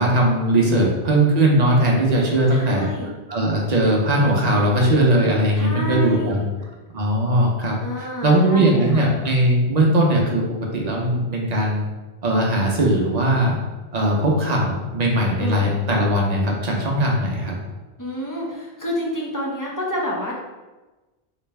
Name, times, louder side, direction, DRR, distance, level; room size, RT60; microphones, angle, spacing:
voice 1, 0.0-2.9 3.3-6.4 6.9-10.4 10.7-11.9 12.2-13.6 13.9-17.5, right 1 dB, 45° right, -1 dB, 0.8 m, -19 dB
voice 2, 0.5-0.9 2.5-3.1 5.6-6.5 7.8-9.0 15.4-15.7 18.0-20.3, equal, 20° left, -4 dB, 0.6 m, -29 dB
3.3 x 3.1 x 3.3 m, 1.2 s
omnidirectional pair, 1.1 m